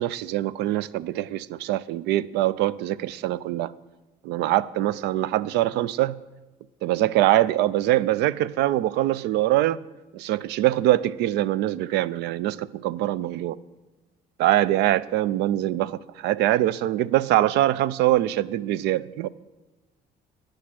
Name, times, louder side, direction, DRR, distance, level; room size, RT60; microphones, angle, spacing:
voice 1, 0.0-3.7 4.2-6.2 6.8-9.8 10.1-13.6 14.4-19.3, right 14 dB, 85° right, 0.4 m, -23 dB
9.9 x 6.4 x 6.0 m
cardioid pair, 110°, 17 cm